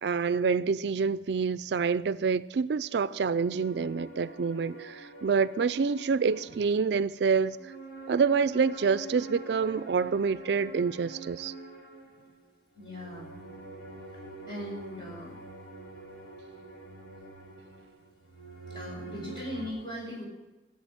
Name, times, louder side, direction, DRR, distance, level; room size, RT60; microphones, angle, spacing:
voice 1, 0.0-7.7 8.1-11.5, right 5 dB, 70° right, 0.4 m, -27 dB
sound 1, 3.0-19.7, right 2 dB, 90° left, 5.0 m, -46 dB
voice 2, 12.8-13.3 14.5-15.3 18.7-20.2, equal, 25° left, 5.7 m, -39 dB
15.5 x 7.5 x 8.7 m
head